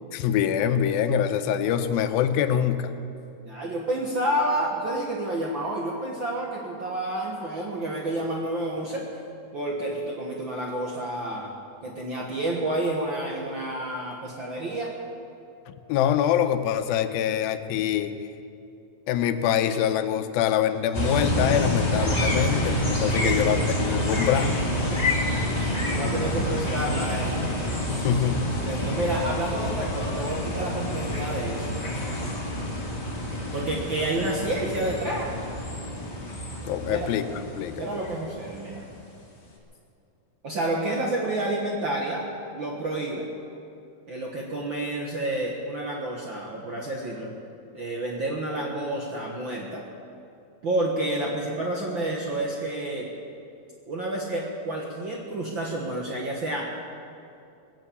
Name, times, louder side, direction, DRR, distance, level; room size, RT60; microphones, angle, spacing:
voice 1, 0.1-2.9 15.9-18.1 19.1-24.6 27.9-28.4 36.6-37.9, left 9 dB, 90° left, 10 dB, 2.5 m, -24 dB
voice 2, 3.4-9.0 9.5-11.5 11.8-14.9 22.4-22.5 23.4-23.5 24.9-25.0 25.5-27.5 28.5-32.2 33.5-35.3 36.9-37.1 37.8-38.8 40.4-42.3 42.5-43.3 44.1-47.3 47.7-49.8 50.6-53.1 53.9-56.7, right 1 dB, 55° right, -2 dB, 1.4 m, -29 dB
sound 1, 20.9-38.9, left 1 dB, 20° left, 1.2 m, -28 dB
21.5 x 7.5 x 8.5 m, 2.6 s
omnidirectional pair, 4.1 m